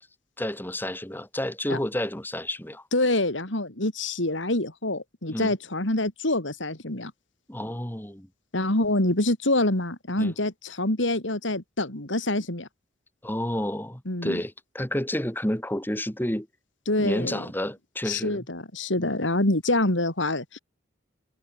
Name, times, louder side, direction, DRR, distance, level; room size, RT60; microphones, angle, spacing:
voice 1, 0.4-2.8 5.3-5.5 7.5-8.3 10.2-10.3 13.2-16.5 17.0-18.5 19.0-19.2, left 1 dB, 10° left, 2.1 m, -30 dB
voice 2, 2.9-7.1 8.5-12.7 14.1-14.4 16.9-17.4 18.0-20.6, left 2 dB, 75° left, 4.0 m, -26 dB
head